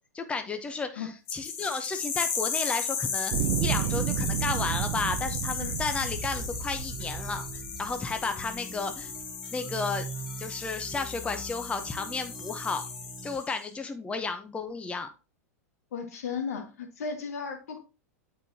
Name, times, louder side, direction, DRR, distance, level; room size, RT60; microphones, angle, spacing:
voice 1, 0.1-9.1 9.5-10.0 10.4-12.8 13.2-15.1, left 4 dB, 15° left, 0.7 m, -33 dB
sound 1, 1.3-13.6, left 6 dB, 50° left, 1.6 m, -35 dB
sound 2, 3.3-8.6 9.3-9.4, right 10 dB, 50° right, 0.6 m, -32 dB
sound 3, 6.0-13.4, right 2 dB, 5° right, 1.0 m, -42 dB
voice 2, 15.9-17.8, left 5 dB, 70° left, 1.7 m, -35 dB
9.0 x 4.6 x 2.7 m
hypercardioid pair, 95°, 9 cm